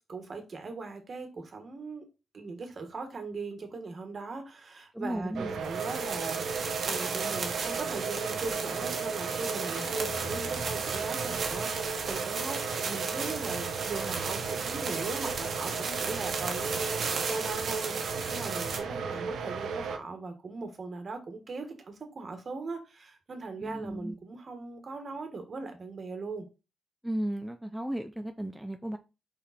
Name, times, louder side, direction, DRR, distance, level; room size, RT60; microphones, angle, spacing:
voice 1, 0.1-2.0 2.3-26.5, right 3 dB, 45° right, 1.7 m, -39 dB
voice 2, 4.9-5.6 23.6-24.2 27.0-29.0, right 1 dB, 5° right, 0.5 m, -35 dB
sound 1, 5.4-20.0, right 5 dB, 90° right, 1.0 m, -35 dB
sound 2, 5.6-18.8, right 4 dB, 65° right, 1.4 m, -35 dB
Guitar, 9.7-11.8, left 2 dB, 85° left, 2.1 m, -47 dB
5.1 x 4.8 x 4.3 m
cardioid pair, 95°, 0 cm